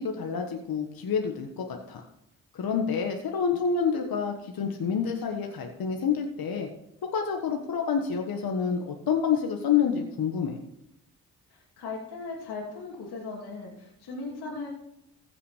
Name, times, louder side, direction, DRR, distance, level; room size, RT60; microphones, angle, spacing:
voice 1, 0.0-2.0 2.5-6.7 7.0-10.6, left 6 dB, 65° left, 3 dB, 1.5 m, -28 dB
voice 2, 11.5-14.7, left 3 dB, 80° left, -4 dB, 2.8 m, -38 dB
15.5 x 5.9 x 5.0 m, 0.82 s
supercardioid pair, 45°, 39 cm